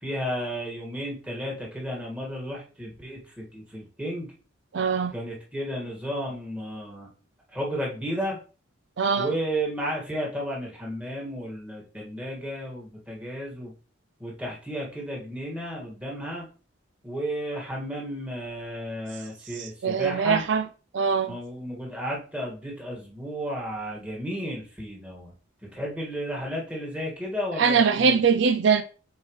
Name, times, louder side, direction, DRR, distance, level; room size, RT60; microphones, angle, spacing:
voice 1, 0.0-4.3 5.1-7.1 7.5-8.4 9.2-13.7 14.2-16.4 17.0-20.4 21.3-25.3 25.6-28.2, equal, 5° right, 1.9 m, -33 dB
voice 2, 4.7-5.1 9.0-9.3 19.6-20.6 20.9-21.4 27.6-28.8, right 6 dB, 65° right, 0.4 m, -22 dB
7.3 x 4.6 x 3.2 m
head